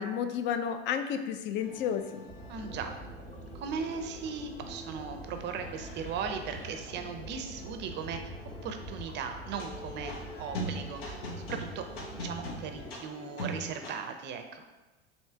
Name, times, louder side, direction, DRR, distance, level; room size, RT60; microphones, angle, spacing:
voice 1, 0.0-2.2, left 8 dB, 40° left, 8 dB, 0.4 m, -32 dB
sound 1, 1.6-14.0, equal, 75° left, 0.8 m, -43 dB
sound 2, 2.3-12.9, right 1 dB, 20° left, 0.8 m, -45 dB
voice 2, 2.5-3.0 3.5-8.3 8.6-14.7, right 6 dB, 35° right, 6 dB, 0.5 m, -38 dB
3.2 x 2.8 x 4.4 m, 1.1 s
hypercardioid pair, 75°, 31 cm